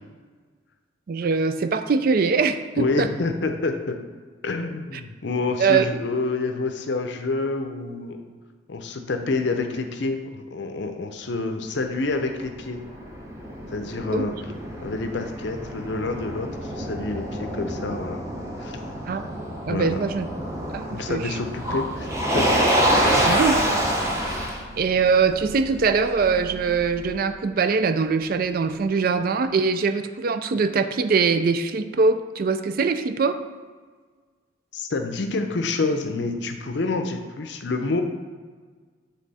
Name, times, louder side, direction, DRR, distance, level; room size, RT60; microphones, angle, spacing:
voice 1, 1.1-3.1 5.6-5.8 14.1-14.2 19.1-19.3 19.7-20.3 20.7-21.4 23.2-23.6 24.8-33.4, right 5 dB, 45° right, 9 dB, 0.3 m, -22 dB
voice 2, 2.8-4.0 4.4-8.2 8.7-12.8 13.7-14.3 14.8-18.3 18.6-18.8 19.7-20.0 20.9-22.5 23.0-23.4 34.7-38.0, left 3 dB, 60° left, 6 dB, 0.6 m, -28 dB
Motor vehicle (road), 12.1-27.1, right 1 dB, 15° right, 0.8 m, -27 dB
7.4 x 3.5 x 4.1 m, 1.5 s
head